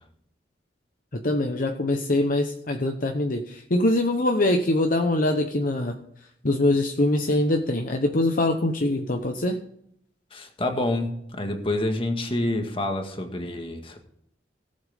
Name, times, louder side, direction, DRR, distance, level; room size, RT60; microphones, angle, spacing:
voice 1, 1.2-5.9 6.4-9.6, left 1 dB, 50° left, 4 dB, 0.9 m, -23 dB
voice 2, 10.3-14.0, left 1 dB, 30° left, 4 dB, 1.7 m, -28 dB
17.5 x 7.8 x 3.6 m, 0.72 s
head